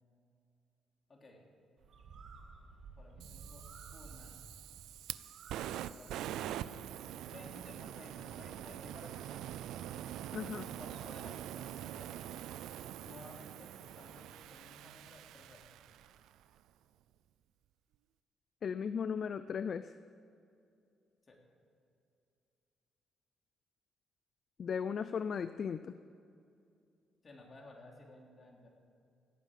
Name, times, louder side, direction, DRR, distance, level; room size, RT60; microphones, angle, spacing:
voice 1, 1.1-1.5 3.0-3.7 3.9-4.4 5.9-6.2 7.2-9.5 10.8-12.1 13.0-15.7 21.3-21.4 27.2-28.7, left 1 dB, 35° left, 0 dB, 3.1 m, -55 dB
Bird, 1.8-11.3, right 4 dB, 65° right, 1.9 m, -57 dB
Fire, 3.2-16.3, right 11 dB, 85° right, 0.4 m, -44 dB
voice 2, 10.3-10.7 18.6-19.9 24.6-26.0, left 6 dB, 55° left, 13 dB, 0.4 m, -36 dB
16.5 x 9.1 x 7.5 m, 2.5 s
cardioid pair, 90°, 0 cm